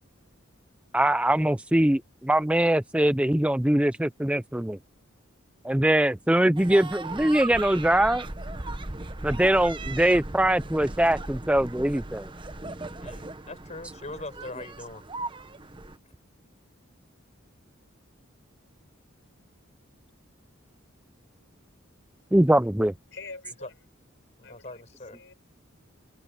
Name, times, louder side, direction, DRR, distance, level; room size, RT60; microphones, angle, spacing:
voice 1, 0.9-4.8 5.6-8.3 9.2-12.3 22.3-22.9, right 1 dB, 5° right, 0.4 m, -22 dB
sound 1, 6.6-16.0, right 2 dB, 25° right, 1.0 m, -37 dB
voice 2, 13.0-15.0 23.6-23.7 24.4-25.2, left 2 dB, 35° left, 6.0 m, -41 dB
voice 3, 23.1-23.7 24.4-24.8 25.1-25.3, left 3 dB, 65° left, 5.0 m, -44 dB
head